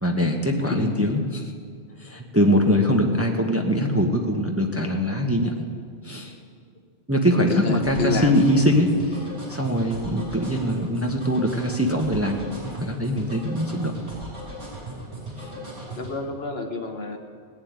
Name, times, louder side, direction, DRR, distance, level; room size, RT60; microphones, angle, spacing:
voice 1, 0.0-1.4 2.0-5.7 6.0-6.4 7.1-13.9 15.4-15.5, equal, 10° right, 2 dB, 1.0 m, -22 dB
voice 2, 0.7-1.4 5.3-5.5 7.5-8.4 10.2-10.3 15.9-17.2, left 3 dB, 55° left, 5 dB, 1.3 m, -28 dB
sound 1, 7.8-16.1, right 2 dB, 55° right, 5.7 m, -37 dB
17.5 x 7.5 x 9.6 m, 2.1 s
omnidirectional pair, 1.3 m